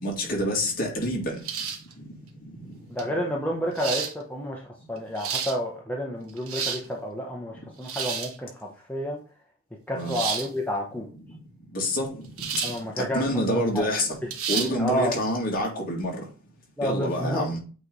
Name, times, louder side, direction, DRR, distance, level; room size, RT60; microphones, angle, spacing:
voice 1, 0.0-1.4 2.0-2.1 2.6-3.1 9.9-10.2 11.2-11.4 11.7-12.2 12.5-12.6 13.0-14.2 14.5-16.2 16.8-17.6, left 1 dB, 40° left, 2.1 m, -27 dB
sound 1, 1.4-1.9 3.0-3.1 3.8-4.1 5.0-5.6 6.3-6.9 7.8-8.4 10.1-10.5 12.4-12.8 13.2-13.3 14.3-14.7, right 6 dB, 75° right, 1.2 m, -30 dB
voice 2, 2.9-4.6 4.9-8.5 8.9-9.2 9.9-11.1 12.6-13.2 13.5-13.9 14.5-15.1 16.8-17.5, equal, 5° left, 0.9 m, -30 dB
8.3 x 3.2 x 3.9 m
head